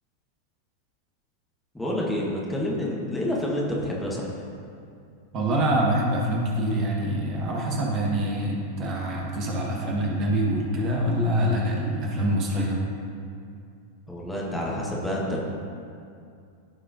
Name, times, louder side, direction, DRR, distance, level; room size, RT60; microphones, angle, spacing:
voice 1, 1.7-4.3 14.1-15.4, left 1 dB, 5° left, -4 dB, 1.6 m, -28 dB
voice 2, 5.3-12.8, right 1 dB, 35° right, -2 dB, 1.6 m, -25 dB
15.0 x 5.7 x 2.8 m, 2.4 s
figure-of-eight pair, 90°, 0 cm